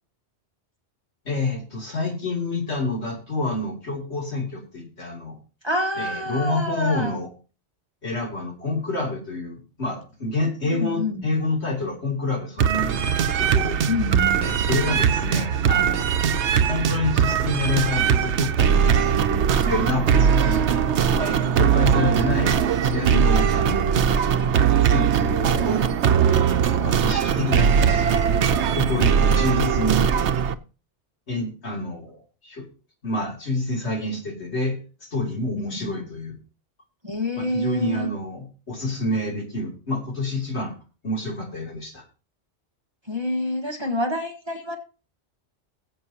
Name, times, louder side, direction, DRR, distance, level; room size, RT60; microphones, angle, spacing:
voice 1, 1.2-5.4 6.0-7.3 8.0-13.8 14.4-16.1 16.7-20.7 21.2-24.0 24.8-25.9 26.8-28.0 28.7-30.1 31.3-32.7 33.0-36.4 37.4-40.7 41.0-42.0, left 2 dB, 70° left, 0 dB, 3.2 m, -28 dB
voice 2, 5.6-7.2 10.6-11.3 13.9-14.4 35.5-35.9 37.0-38.1 43.1-44.8, left 1 dB, 25° right, 2 dB, 1.5 m, -27 dB
sound 1, 12.6-30.5, right 7 dB, 80° right, 1.0 m, -20 dB
20.5 x 7.6 x 2.9 m, 0.34 s
omnidirectional pair, 1.2 m